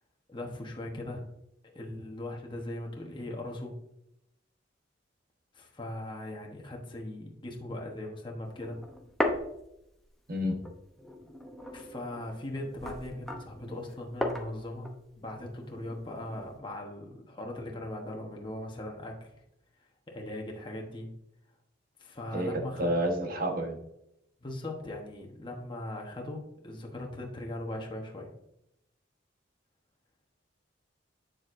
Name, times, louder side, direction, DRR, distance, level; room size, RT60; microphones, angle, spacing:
voice 1, 0.3-1.3 1.7-3.7 5.5-8.8 11.7-14.9 15.2-19.3 20.1-21.1 22.0-22.9 24.4-28.3, left 1 dB, 25° left, 0 dB, 1.1 m, -39 dB
sound 1, 8.4-10.3 10.6-16.6, left 1 dB, ahead, 0.7 m, -37 dB
voice 2, 10.3-10.6 22.3-23.8, equal, 50° right, 3 dB, 1.2 m, -30 dB
7.8 x 7.0 x 2.6 m, 0.81 s
head